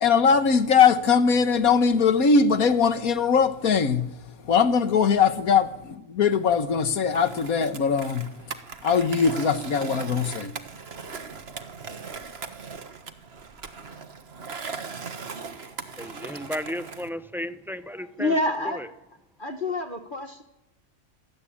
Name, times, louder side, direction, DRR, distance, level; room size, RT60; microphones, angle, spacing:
voice 1, 0.0-4.1 4.5-8.3 8.8-10.5, left 6 dB, 85° left, 1.8 m, -21 dB
Skateboard, 7.1-17.1, right 5 dB, 50° right, 1.6 m, -39 dB
voice 2, 16.0-18.3 18.6-18.9, equal, ahead, 0.8 m, -34 dB
voice 3, 18.2-18.8 19.4-20.4, left 2 dB, 35° left, 1.8 m, -27 dB
27.0 x 18.0 x 8.8 m
omnidirectional pair, 1.5 m